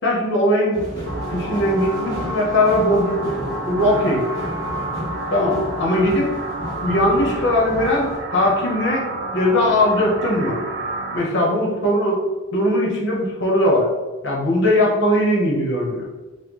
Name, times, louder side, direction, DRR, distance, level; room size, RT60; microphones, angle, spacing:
voice 1, 0.0-0.9 1.3-4.2 5.3-6.3 6.8-9.1 9.3-10.6 11.1-12.2 12.5-13.9 14.2-16.1, left 1 dB, 60° left, -3 dB, 0.9 m, -19 dB
sound 1, 0.7-8.2, equal, 20° left, 1.0 m, -33 dB
sound 2, 1.1-11.2, right 2 dB, 60° right, 0.6 m, -30 dB
4.2 x 2.2 x 3.0 m, 1.3 s
head